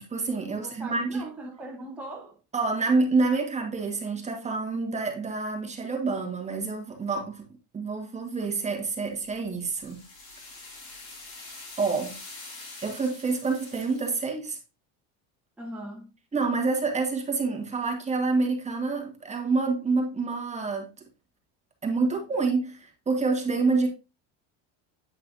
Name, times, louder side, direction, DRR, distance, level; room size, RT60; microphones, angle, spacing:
voice 1, 0.0-1.2 2.5-7.4 7.7-10.0 11.8-12.2 12.8-14.6 16.3-20.9 21.8-23.9, right 3 dB, 20° right, 1.5 m, -27 dB
voice 2, 0.5-2.4 15.6-16.1, right 1 dB, 5° right, 1.3 m, -40 dB
sound 1, 9.0-14.2, left 3 dB, 50° left, 4.2 m, -45 dB
8.9 x 5.5 x 2.6 m
cardioid pair, 135°, 34 cm